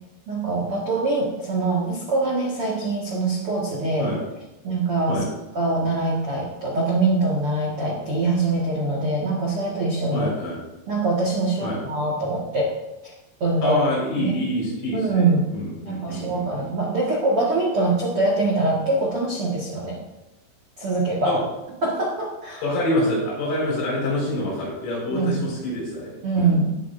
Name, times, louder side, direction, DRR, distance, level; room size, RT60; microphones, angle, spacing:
voice 1, 0.3-4.1 4.6-5.2 5.5-10.3 10.9-12.7 13.4-13.8 14.2-14.3 14.9-15.5 15.8-20.0 20.8-21.3 21.8-22.6 25.1-25.4 26.2-26.8, right 2 dB, 70° right, -4 dB, 1.3 m, -23 dB
voice 2, 10.1-10.6 11.6-11.8 13.6-16.7 21.2-21.4 22.6-26.5, left 1 dB, 75° left, -4 dB, 7.9 m, -26 dB
16.5 x 12.5 x 2.7 m, 0.98 s
omnidirectional pair, 6.0 m